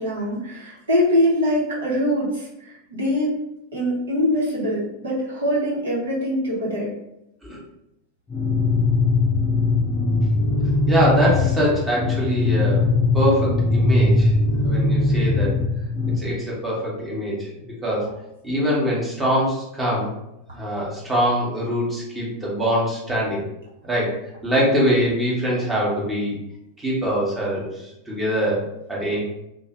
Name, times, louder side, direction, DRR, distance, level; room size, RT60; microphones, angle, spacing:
voice 1, 0.0-3.3 3.7-6.9, equal, 65° right, -6 dB, 1.2 m, -23 dB
sound 1, 8.3-16.3, left 3 dB, 25° left, 0.6 m, -20 dB
voice 2, 10.9-12.9 13.1-14.3 14.6-15.5 16.2-17.5 17.8-18.1 18.4-20.1 20.5-23.4 23.8-24.2 24.4-26.4 26.8-29.2, equal, 10° right, -6 dB, 1.2 m, -23 dB
2.6 x 2.4 x 2.9 m, 0.86 s
figure-of-eight pair, 90°, 0 cm